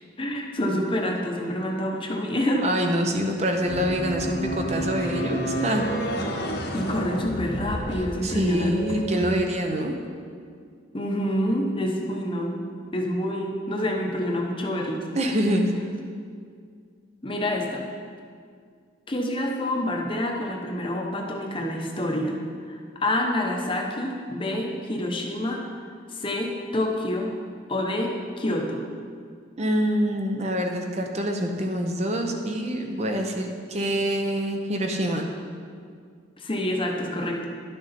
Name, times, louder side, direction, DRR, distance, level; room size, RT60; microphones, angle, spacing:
voice 1, 0.2-2.7 4.8-4.9 6.7-9.0 10.9-12.5 12.9-15.1 17.2-17.9 19.1-22.4 22.7-25.6 26.1-27.4 27.7-28.8 36.4-37.5, left 1 dB, 25° left, 1 dB, 0.8 m, -27 dB
voice 2, 2.6-5.9 8.0-9.9 15.1-15.7 29.6-35.2, equal, 35° right, 3 dB, 0.6 m, -25 dB
sound 1, 3.6-9.3, equal, 55° left, 1.0 m, -30 dB
11.0 x 6.7 x 4.2 m, 2.1 s
head